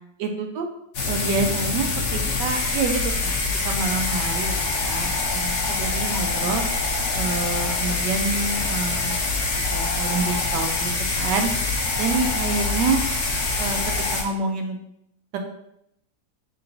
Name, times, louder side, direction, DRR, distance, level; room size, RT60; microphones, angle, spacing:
voice 1, 0.2-0.7 1.1-3.3 3.6-6.6 7.1-9.4 9.7-13.0 13.6-13.8 14.1-14.8 15.3-15.4, right 4 dB, 80° right, 4 dB, 1.2 m, -27 dB
sound 1, 0.9-14.2, left 3 dB, 70° left, 1.2 m, -25 dB
4.4 x 3.7 x 2.5 m, 0.77 s
omnidirectional pair, 1.9 m